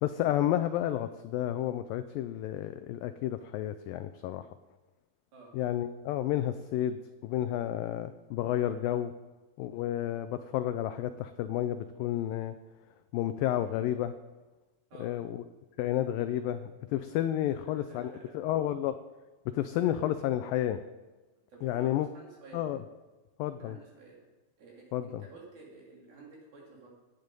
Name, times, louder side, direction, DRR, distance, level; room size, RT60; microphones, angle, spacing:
voice 1, 0.0-4.5 5.5-7.0 7.2-9.1 9.6-12.6 13.1-14.1 15.0-15.4 15.8-19.0 19.5-20.8 21.6-22.1 22.5-22.8 23.4-23.8 24.9-25.2, left 12 dB, 90° left, 10 dB, 2.0 m, -31 dB
voice 2, 17.4-18.4 19.7-20.0 21.5-22.7 23.6-24.2 24.6-26.9, right 3 dB, 65° right, -3 dB, 5.1 m, -52 dB
15.5 x 9.6 x 5.3 m, 1.2 s
omnidirectional pair, 4.6 m